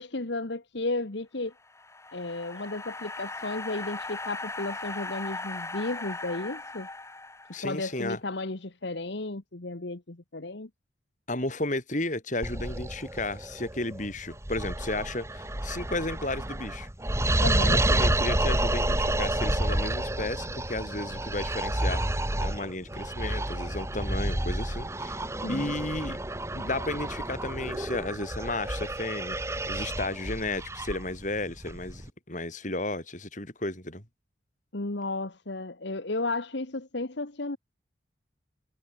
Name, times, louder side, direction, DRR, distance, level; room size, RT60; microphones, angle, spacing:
voice 1, 0.0-1.5 2.1-6.9 7.6-10.7 17.4-17.8 25.4-25.8 34.7-37.6, left 2 dB, 65° left, 1.4 m, -33 dB
sound 1, 1.5-7.9, left 2 dB, 15° left, 2.3 m, -38 dB
voice 2, 7.5-8.2 11.3-16.9 17.6-25.2 25.5-26.2 26.5-34.0, left 2 dB, 40° left, 5.3 m, -33 dB
sound 2, 12.4-32.1, right 1 dB, 15° right, 1.7 m, -30 dB
head